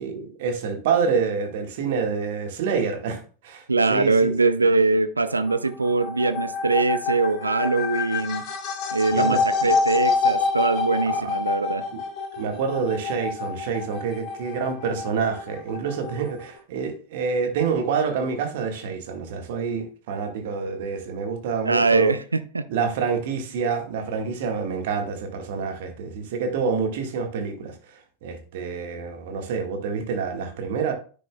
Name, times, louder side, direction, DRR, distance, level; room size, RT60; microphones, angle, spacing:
voice 1, 0.0-4.3 9.1-9.4 9.7-9.8 11.0-11.3 11.9-12.0 12.4-22.2 22.7-30.9, right 5 dB, 50° right, 1.6 m, -27 dB
voice 2, 3.7-8.4 8.9-11.8 21.7-22.6, right 3 dB, 80° right, 0.5 m, -22 dB
sound 1, 5.3-16.6, left 4 dB, 40° left, 2.4 m, -27 dB
10.0 x 6.9 x 2.2 m
figure-of-eight pair, 90°, 0 cm